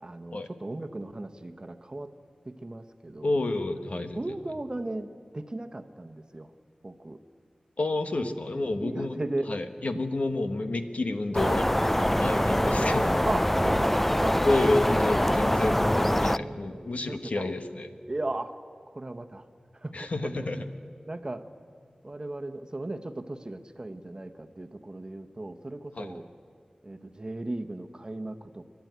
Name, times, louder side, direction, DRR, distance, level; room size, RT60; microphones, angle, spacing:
voice 1, 0.0-2.1 2.4-3.3 4.1-6.5 6.8-7.2 8.2-8.3 8.7-9.5 13.3-14.4 16.3-17.5 18.1-18.5 18.9-19.5 19.7-20.5 21.1-21.5 22.0-26.3 26.8-28.7, right 2 dB, 35° right, 8 dB, 1.1 m, -36 dB
voice 2, 3.2-4.2 7.8-9.2 9.5-13.3 14.4-17.9 19.9-20.6 26.0-26.1, left 2 dB, 65° left, 8 dB, 1.3 m, -29 dB
sound 1, 11.3-16.4, equal, 10° left, 0.4 m, -24 dB
29.5 x 12.0 x 9.3 m, 2.2 s
wide cardioid pair, 65°, 2 cm